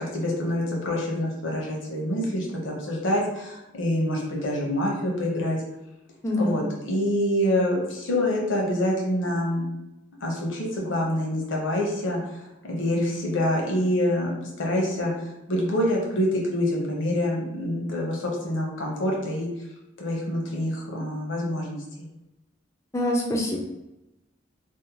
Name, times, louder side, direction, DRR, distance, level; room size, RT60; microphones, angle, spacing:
voice 1, 0.0-5.6 6.4-9.7 10.2-14.3 14.6-15.1 15.5-19.5 20.0-21.8, left 1 dB, 70° left, -2 dB, 0.7 m, -26 dB
voice 2, 6.2-6.6 22.9-23.6, left 1 dB, 15° left, -1 dB, 0.3 m, -25 dB
2.6 x 2.1 x 2.8 m, 0.92 s
head